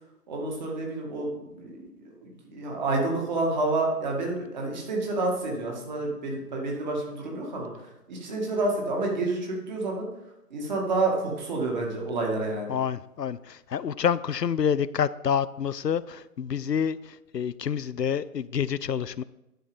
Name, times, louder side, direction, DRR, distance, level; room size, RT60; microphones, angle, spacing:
voice 1, 0.3-1.3 1.5-1.9 2.2-7.7 8.1-10.1 10.5-12.7, right 2 dB, 30° right, 2.2 m, -29 dB
voice 2, 12.7-19.2, left 8 dB, 85° left, 0.6 m, -28 dB
10.0 x 5.9 x 5.3 m
figure-of-eight pair, 150°, 48 cm